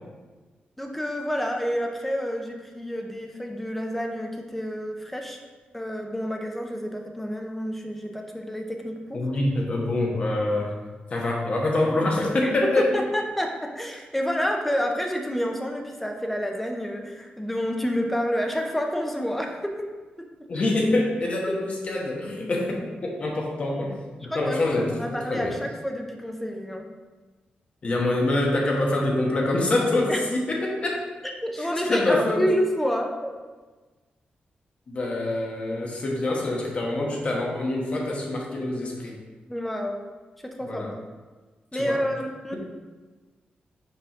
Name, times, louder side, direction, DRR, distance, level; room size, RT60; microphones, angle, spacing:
voice 1, 0.8-5.4 5.7-9.2 12.4-12.5 12.8-13.5 13.8-19.7 24.2-26.9 30.1-30.2 31.4-33.4 39.5-40.0 40.6-40.8 41.7-42.6, equal, 5° left, 2 dB, 0.7 m, -29 dB
voice 2, 9.1-10.7 11.1-12.9 20.5-25.6 27.8-31.0 31.6-32.5 34.9-39.2 40.6-40.9 41.7-42.0, left 2 dB, 40° left, -1 dB, 1.2 m, -25 dB
5.7 x 5.0 x 3.7 m, 1.3 s
wide cardioid pair, 150°, 3 cm